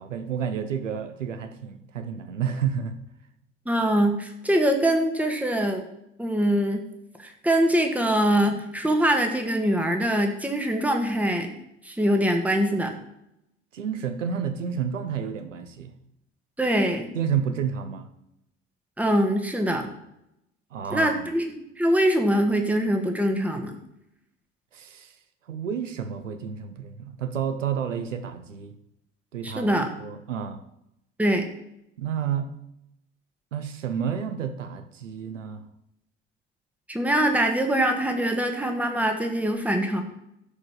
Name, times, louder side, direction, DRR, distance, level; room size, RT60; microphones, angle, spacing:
voice 1, 0.0-3.0 13.7-15.9 17.1-18.1 20.7-21.3 24.7-25.2 25.5-28.7 29.3-29.7 30.0-30.6 32.0-32.5 33.5-35.6, right 7 dB, 85° right, 10 dB, 0.8 m, -30 dB
voice 2, 3.7-5.8 6.2-6.8 7.2-11.5 11.8-12.9 16.6-17.1 19.0-19.9 20.9-23.8 29.4-29.9 31.2-31.5 36.9-40.0, right 1 dB, 5° right, 3 dB, 1.9 m, -23 dB
12.5 x 5.1 x 7.2 m, 0.82 s
figure-of-eight pair, 60°, 37 cm